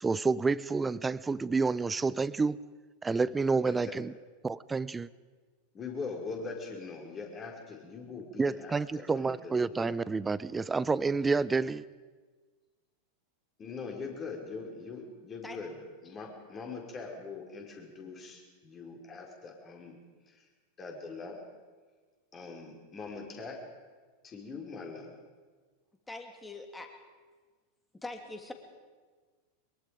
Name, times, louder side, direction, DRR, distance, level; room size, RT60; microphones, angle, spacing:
voice 1, 0.0-2.6 3.0-4.1 4.4-5.1 8.4-11.8, right 4 dB, 15° right, 0.6 m, -29 dB
voice 2, 3.6-3.9 5.7-10.0 13.6-15.7 16.0-20.0 20.3-20.4 20.8-21.4 22.3-23.7 24.2-25.1, left 4 dB, 25° left, 4.7 m, -42 dB
voice 3, 26.1-26.9 27.9-28.5, left 2 dB, 10° left, 2.8 m, -42 dB
23.5 x 22.5 x 5.2 m
figure-of-eight pair, 85°, 0 cm